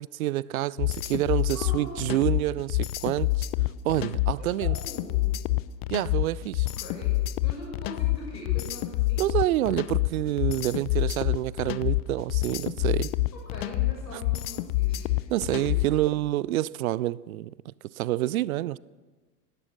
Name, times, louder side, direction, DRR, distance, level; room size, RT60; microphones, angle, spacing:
voice 1, 0.0-3.5 3.8-4.8 5.9-6.7 9.2-13.1 14.1-14.2 15.3-18.8, right 15 dB, 60° right, 0.5 m, -28 dB
sound 1, 0.8-16.0, left 17 dB, 40° left, 0.6 m, -27 dB
voice 2, 1.5-2.1 4.4-5.3 6.8-7.1 7.4-9.2 13.3-15.6, left 1 dB, 85° left, 6.8 m, -42 dB
17.5 x 12.0 x 6.3 m
figure-of-eight pair, 90°, 49 cm